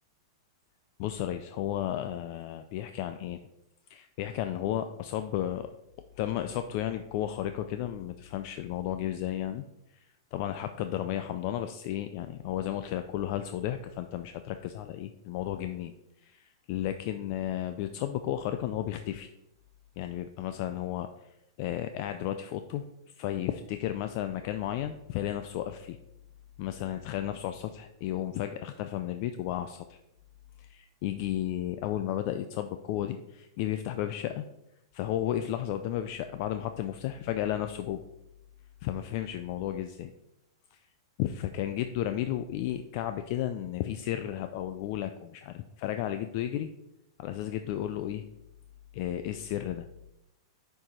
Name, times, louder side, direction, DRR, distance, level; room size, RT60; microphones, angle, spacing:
voice 1, 1.0-3.4 3.9-5.7 6.2-9.6 9.9-10.1 10.3-15.9 16.2-19.3 20.0-21.1 21.6-22.8 23.2-26.0 26.6-30.0 30.6-34.4 34.9-38.0 38.8-40.1 40.7-40.8 41.2-46.7 47.2-48.2 48.9-49.9, left 12 dB, 45° left, 9 dB, 0.3 m, -33 dB
6.4 x 4.6 x 4.2 m, 0.86 s
supercardioid pair, 150°, 2 cm